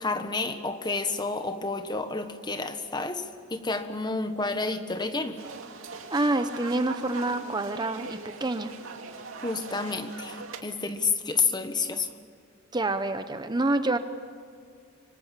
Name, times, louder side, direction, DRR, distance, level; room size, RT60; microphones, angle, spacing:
voice 1, 0.0-3.2 3.5-5.4 9.4-12.1, left 4 dB, 20° left, 9 dB, 1.4 m, -30 dB
sound 1, 5.4-10.6, right 4 dB, 90° right, 2.4 m, -41 dB
voice 2, 6.1-8.7 12.7-14.0, right 2 dB, 20° right, 9 dB, 0.8 m, -27 dB
26.0 x 23.5 x 7.5 m, 2.2 s
head